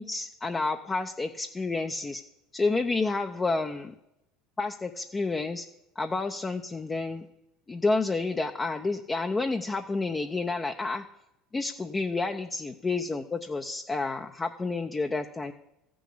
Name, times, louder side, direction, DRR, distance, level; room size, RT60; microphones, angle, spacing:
voice 1, 0.0-2.2 2.5-3.9 4.6-5.7 6.0-7.3 7.7-11.0 11.5-15.5, left 3 dB, 20° left, 5 dB, 0.7 m, -30 dB
14.0 x 6.3 x 8.4 m, 0.88 s
supercardioid pair, 115°, 0 cm